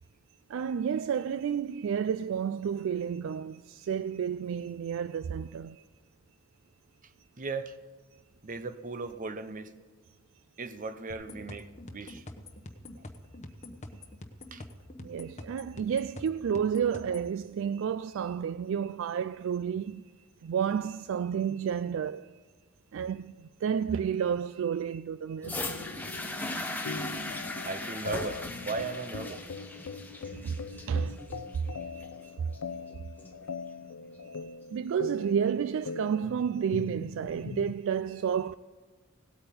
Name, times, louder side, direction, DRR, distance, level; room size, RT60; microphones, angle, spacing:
voice 1, 0.5-5.8 15.0-20.0 20.4-22.3 22.9-25.6 30.3-31.2 31.7-32.3 34.3-38.5, right 7 dB, 60° right, 0.3 m, -31 dB
voice 2, 7.4-7.7 8.4-9.7 10.6-12.2 14.5-14.6 27.6-29.4, right 3 dB, 40° right, 0.7 m, -37 dB
sound 1, 11.1-17.3, left 1 dB, 35° left, 1.0 m, -46 dB
sound 2, 25.4-37.8, left 4 dB, 85° left, 0.5 m, -41 dB
sound 3, 25.4-33.4 34.2-34.3, left 2 dB, 10° left, 1.1 m, -38 dB
17.5 x 8.8 x 5.3 m
head